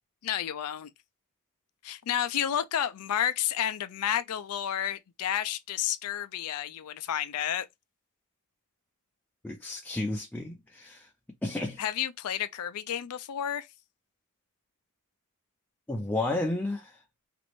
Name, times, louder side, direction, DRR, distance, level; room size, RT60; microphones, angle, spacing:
voice 1, 0.2-0.9 1.8-7.7 11.8-13.7, left 10 dB, 75° left, 0.4 m, -31 dB
voice 2, 9.4-11.1 11.4-11.8 15.9-17.0, left 2 dB, 10° left, 0.4 m, -32 dB
3.0 x 2.5 x 3.1 m
head